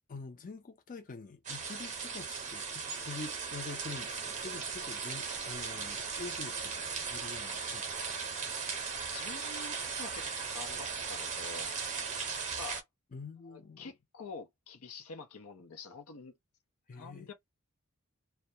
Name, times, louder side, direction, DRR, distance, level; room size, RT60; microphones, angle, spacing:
voice 1, 0.1-8.2 13.1-13.9 16.9-17.3, left 3 dB, 40° left, 0.5 m, -46 dB
sound 1, 1.4-12.8, right 5 dB, 35° right, 0.7 m, -38 dB
voice 2, 9.1-11.7 12.6-12.8 13.5-16.3 16.9-17.3, left 4 dB, 75° left, 0.7 m, -47 dB
2.2 x 2.2 x 2.7 m
head